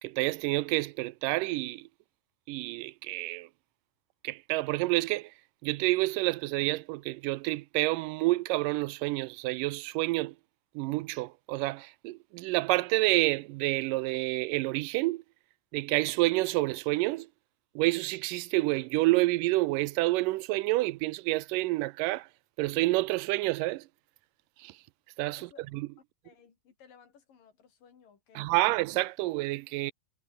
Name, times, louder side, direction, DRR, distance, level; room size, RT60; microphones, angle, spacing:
voice 1, 0.0-1.9 2.5-3.5 4.2-5.3 5.6-10.4 10.7-15.2 15.7-17.3 17.8-22.3 22.6-23.9 24.6-24.8 25.2-25.9 28.4-29.9, right 20 dB, 85° right, 2.2 m, -29 dB
voice 2, 26.2-28.8, left 7 dB, 80° left, 5.2 m, -58 dB
omnidirectional pair, 3.8 m